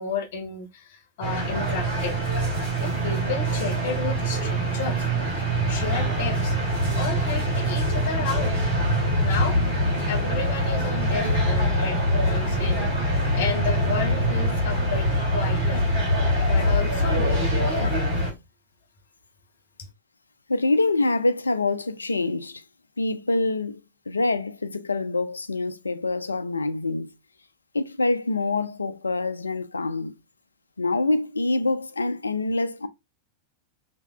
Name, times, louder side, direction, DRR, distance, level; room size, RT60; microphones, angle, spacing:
voice 1, 0.0-2.2 2.8-5.1 5.7-6.6 7.0-8.6 9.2-9.6 10.1-15.1 15.3-15.9 16.5-17.9, left 6 dB, 55° left, 0.7 m, -32 dB
sound 1, 1.2-18.3, equal, 60° right, 1.8 m, -24 dB
voice 2, 20.5-22.6 23.0-23.8 24.1-27.1 27.7-30.2 30.8-32.9, left 2 dB, 80° left, 0.3 m, -25 dB
3.3 x 2.6 x 2.2 m
figure-of-eight pair, 90°, 0 cm